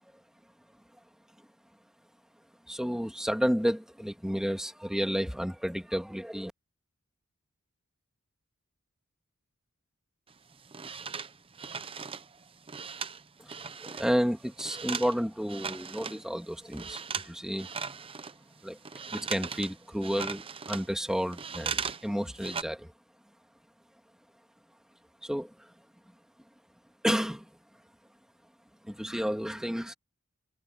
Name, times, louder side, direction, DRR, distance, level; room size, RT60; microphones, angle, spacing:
voice 1, 2.7-6.5 13.4-13.5 13.8-17.7 18.6-18.8 19.1-22.9 25.2-25.7 27.0-27.5 28.8-29.9, equal, 5° right, 2.3 m, -31 dB
sound 1, 10.3-14.1 14.4-16.2 16.6-17.3 17.6-22.1 22.3-22.6, right 6 dB, 25° right, 0.8 m, -38 dB
head